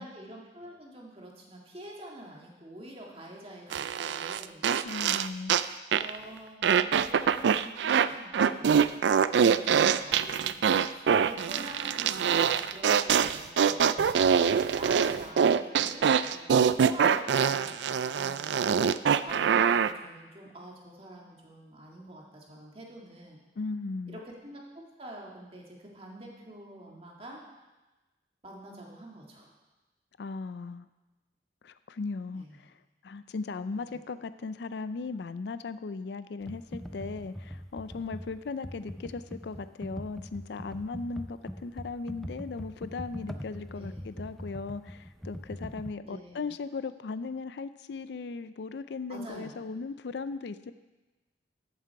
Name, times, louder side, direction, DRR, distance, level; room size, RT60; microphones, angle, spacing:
voice 1, 0.0-4.7 5.9-8.7 9.3-14.2 14.8-18.7 19.2-23.4 24.1-27.4 28.4-29.5 32.3-32.6 33.8-34.0 38.7-38.8 43.7-44.0 46.0-46.5 49.1-49.5, right 1 dB, 30° right, -1 dB, 1.9 m, -47 dB
sound 1, 3.7-5.7 5.9-6.2 6.6-8.1 8.3-19.9, right 7 dB, 70° right, 0.3 m, -24 dB
voice 2, 4.8-5.6 23.6-24.2 30.2-30.9 31.6-50.7, left 4 dB, 65° left, 13 dB, 0.4 m, -37 dB
Computer keyboard, 36.4-45.9, equal, ahead, 0.4 m, -42 dB
14.0 x 7.5 x 4.7 m, 1.1 s
head